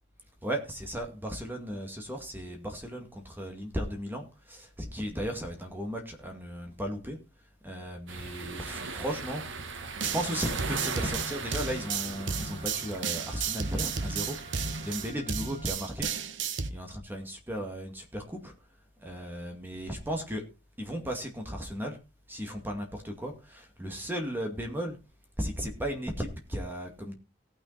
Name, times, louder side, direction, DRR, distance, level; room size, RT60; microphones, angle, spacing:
voice 1, 0.4-7.2 7.6-9.4 10.0-14.4 14.8-16.1 16.7-18.5 19.0-20.4 20.8-22.0 22.3-25.0 25.4-27.2, equal, 10° right, 3 dB, 2.2 m, -35 dB
sound 1, 8.1-15.1, right 4 dB, 90° right, 1.5 m, -39 dB
Trumpet, 9.7-15.8, right 2 dB, 30° right, 6.1 m, -51 dB
sound 2, 10.0-16.7, right 6 dB, 75° right, 1.1 m, -33 dB
17.5 x 6.3 x 4.2 m, 0.30 s
head